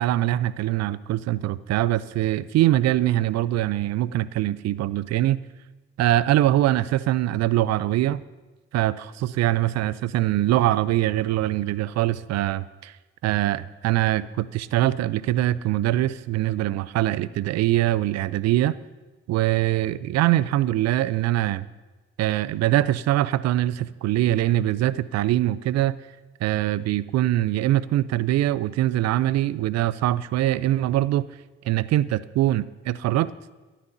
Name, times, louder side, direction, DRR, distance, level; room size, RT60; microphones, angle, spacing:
voice 1, 0.0-5.4 6.0-8.2 8.7-12.9 13.2-18.7 19.3-21.6 22.2-26.0 26.4-31.3 31.6-33.3, right 14 dB, 60° right, 18 dB, 0.6 m, -23 dB
22.5 x 13.0 x 2.8 m, 1.2 s
hypercardioid pair, 45°, 30 cm